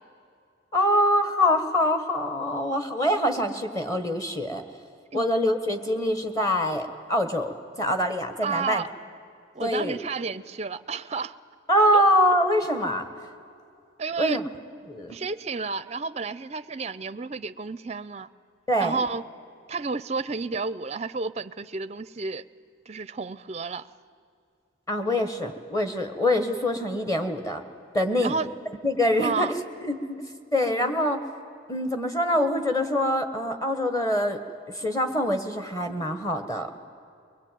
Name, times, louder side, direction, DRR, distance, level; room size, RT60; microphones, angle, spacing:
voice 1, 0.7-4.6 5.1-8.8 9.6-10.0 11.7-13.1 14.2-14.4 14.9-15.2 18.7-19.0 24.9-27.6 27.9-28.5 28.8-29.5 29.8-30.2 30.5-31.2 31.7-34.4 34.7-36.7, left 1 dB, 15° left, 6 dB, 1.4 m, -24 dB
voice 2, 8.4-8.9 9.5-11.3 11.9-12.0 14.0-14.4 15.1-18.3 18.8-19.2 19.7-22.4 22.9-23.9 28.2-28.5 29.2-29.5, right 4 dB, 30° right, 15 dB, 0.5 m, -31 dB
23.0 x 21.0 x 9.2 m, 2.4 s
head